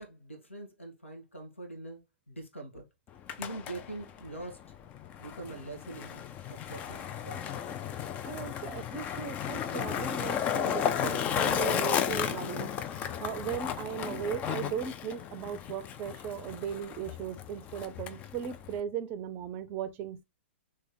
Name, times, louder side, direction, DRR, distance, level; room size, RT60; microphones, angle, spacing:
voice 1, 0.0-2.0 2.3-2.9 3.4-4.7 5.2-6.2 6.5-7.6, right 2 dB, 75° left, 1.8 m, -43 dB
Skateboard, 3.1-18.8, left 8 dB, 20° left, 0.4 m, -34 dB
voice 2, 8.3-20.2, right 8 dB, 30° right, 0.5 m, -37 dB
3.4 x 3.2 x 4.1 m
figure-of-eight pair, 110°, 7 cm